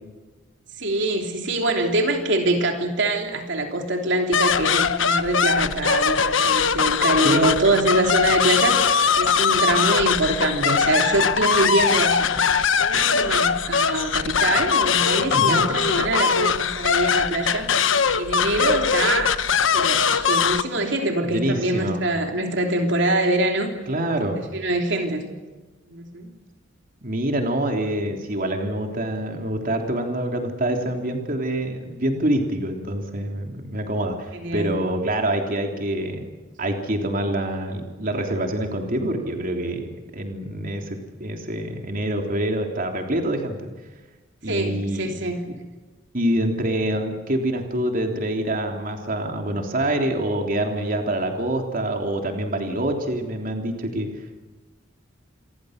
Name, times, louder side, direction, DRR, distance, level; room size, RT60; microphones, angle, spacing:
voice 1, 0.8-12.3 12.8-17.7 18.2-19.3 19.7-23.7 24.5-25.2 25.9-26.3 34.3-34.8 44.5-45.4, right 2 dB, 65° right, 3 dB, 3.2 m, -24 dB
sound 1, 4.3-20.6, left 6 dB, 80° left, 1.1 m, -21 dB
voice 2, 15.3-15.6 21.2-22.0 23.9-24.4 27.0-36.3 36.6-43.6 44.4-45.2 45.5-45.6 46.1-54.1, right 1 dB, 45° right, 3 dB, 3.4 m, -26 dB
28.5 x 22.5 x 6.7 m, 1.2 s
head